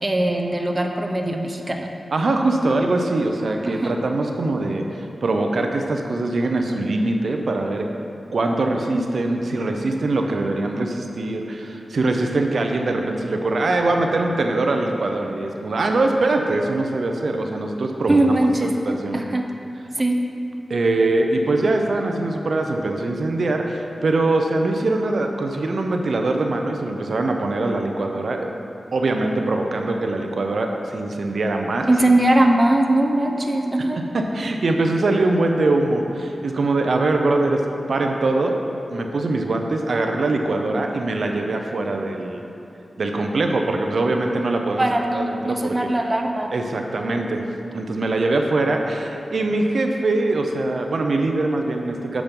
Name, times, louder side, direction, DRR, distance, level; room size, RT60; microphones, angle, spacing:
voice 1, 0.0-1.9 3.6-4.0 18.1-18.8 19.1-19.5 20.0-20.2 31.9-34.1 44.8-46.5, right 1 dB, 25° right, 2 dB, 0.6 m, -20 dB
voice 2, 2.1-7.9 8.3-18.2 18.6-19.2 20.7-28.5 28.9-31.9 33.8-38.6 38.9-42.5 43.0-45.9 46.5-47.4 47.7-52.2, right 2 dB, 70° right, 3 dB, 0.6 m, -22 dB
7.2 x 6.1 x 5.2 m, 2.7 s
wide cardioid pair, 80°, 0 cm